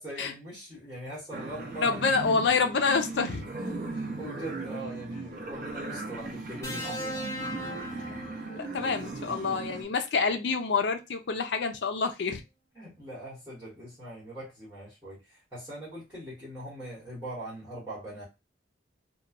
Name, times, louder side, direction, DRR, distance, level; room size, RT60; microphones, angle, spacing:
voice 1, 0.0-2.0 3.6-7.2 8.8-9.0 12.7-18.2, right 1 dB, 10° right, 1.2 m, -41 dB
sound 1, 1.3-9.8, right 3 dB, 45° right, 0.5 m, -38 dB
voice 2, 1.8-3.5 8.5-12.4, left 5 dB, 60° left, 0.4 m, -27 dB
sound 2, 6.6-8.9 10.2-10.4, equal, 15° left, 0.6 m, -38 dB
3.0 x 2.2 x 2.4 m
head